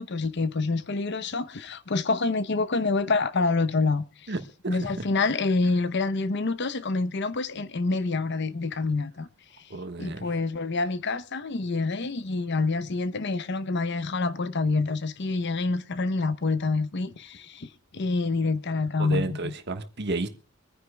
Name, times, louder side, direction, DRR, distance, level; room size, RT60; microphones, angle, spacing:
voice 1, 0.0-4.3 4.7-9.3 10.0-19.5, left 3 dB, 55° left, 0.8 m, -27 dB
voice 2, 4.3-5.1 9.7-10.2 19.0-20.3, right 2 dB, 55° right, 1.4 m, -32 dB
25.5 x 9.9 x 2.3 m
head